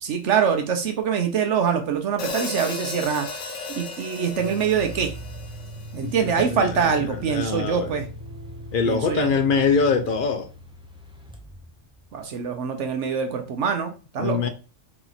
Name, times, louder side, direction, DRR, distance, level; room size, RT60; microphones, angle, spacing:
voice 1, 0.0-3.3 3.8-5.1 5.9-8.1 8.9-9.3 12.1-14.5, right 7 dB, 70° right, 1.0 m, -24 dB
Hi-hat, 2.2-6.4, left 3 dB, 75° left, 1.0 m, -35 dB
sound 1, 3.1-3.3 4.2-12.2, left 2 dB, 10° right, 0.3 m, -44 dB
sound 2, 4.4-10.2, right 2 dB, 85° right, 1.5 m, -40 dB
voice 2, 6.0-6.7 7.0-8.0 8.7-10.5 14.2-14.5, left 5 dB, 50° left, 0.7 m, -24 dB
4.2 x 2.9 x 3.9 m
omnidirectional pair, 1.3 m